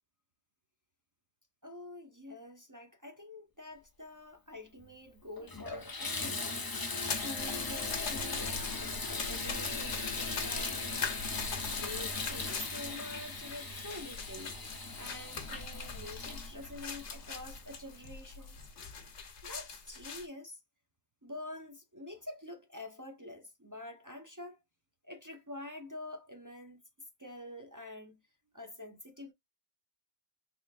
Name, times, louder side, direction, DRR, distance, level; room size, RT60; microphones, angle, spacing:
voice 1, 1.6-6.7 7.2-10.9 11.8-14.6 15.0-18.6 19.4-20.6 21.2-24.6 25.0-26.8 27.2-28.2 28.5-29.3, left 1 dB, 25° right, 0.5 m, -47 dB
Water tap faucet / Bathtub (filling or washing), 4.8-4.9 5.4-17.8 18.4-18.5 19.0-19.1, left 3 dB, 30° left, 0.4 m, -38 dB
sound 1, 7.0-20.3, left 5 dB, 75° left, 1.1 m, -42 dB
3.5 x 3.3 x 2.4 m
omnidirectional pair, 1.2 m